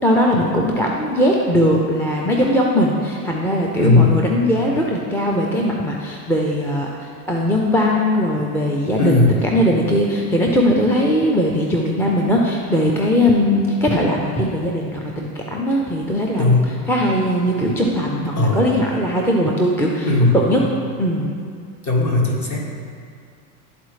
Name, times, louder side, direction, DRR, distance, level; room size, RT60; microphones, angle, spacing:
voice 1, 0.0-16.6 16.9-20.1 20.3-20.6 21.0-21.3, equal, 5° left, -2 dB, 0.4 m, -19 dB
voice 2, 3.8-4.2 9.0-9.4 16.4-16.7 18.3-18.7 20.0-20.3 21.8-22.6, left 3 dB, 40° left, -2 dB, 1.7 m, -16 dB
12.0 x 4.1 x 3.2 m, 2.4 s
supercardioid pair, 110°, 45 cm